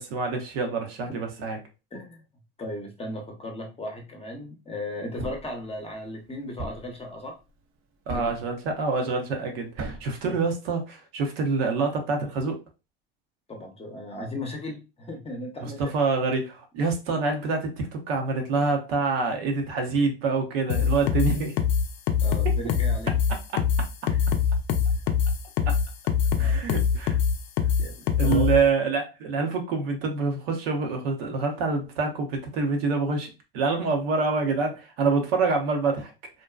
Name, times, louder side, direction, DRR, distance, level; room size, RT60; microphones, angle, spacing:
voice 1, 0.0-1.6 8.1-12.6 15.6-21.6 22.4-22.5 23.5-23.6 26.4-27.2 28.2-36.1, right 4 dB, 75° right, 3 dB, 0.7 m, -26 dB
voice 2, 1.9-2.2 2.6-7.4 8.1-8.3 10.3-10.4 13.5-15.9 22.2-23.1 24.1-24.2 24.9-25.0 25.6-25.7 26.4-26.6 27.8-28.5, left 1 dB, 20° left, 2 dB, 0.7 m, -36 dB
Thump thud, 5.2-5.6 6.6-7.0 8.1-8.5 9.8-10.2, right 3 dB, 45° right, 0.6 m, -36 dB
sound 1, 20.7-28.6, left 7 dB, 55° left, 0.5 m, -23 dB
2.6 x 2.2 x 2.2 m, 0.29 s
hypercardioid pair, 80°, 30 cm